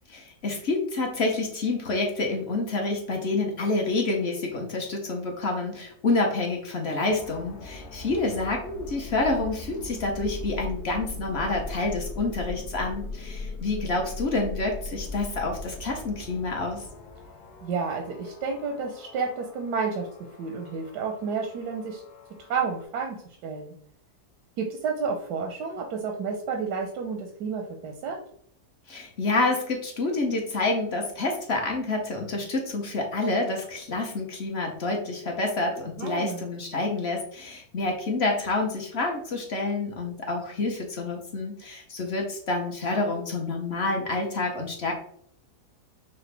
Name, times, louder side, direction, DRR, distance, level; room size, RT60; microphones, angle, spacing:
voice 1, 0.1-16.8 28.9-44.9, left 2 dB, 50° left, 1 dB, 0.8 m, -28 dB
sound 1, 7.0-22.8, left 2 dB, 75° left, 1.2 m, -40 dB
voice 2, 17.6-20.1 20.4-22.0 22.5-23.2 23.4-23.7 24.6-28.2 36.0-36.4, right 5 dB, 90° right, 2 dB, 1.3 m, -30 dB
5.8 x 2.6 x 3.3 m, 0.65 s
omnidirectional pair, 1.7 m